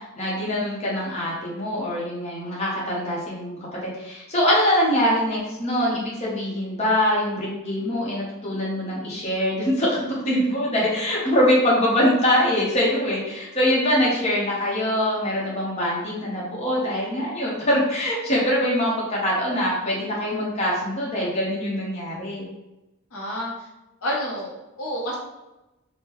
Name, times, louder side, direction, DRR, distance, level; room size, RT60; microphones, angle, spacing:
voice 1, 0.0-10.0 10.3-22.5, equal, 30° left, -5 dB, 0.8 m, -23 dB
voice 2, 23.1-23.7 24.0-25.2, equal, 65° left, -3 dB, 0.7 m, -29 dB
3.6 x 2.1 x 2.9 m, 0.98 s
head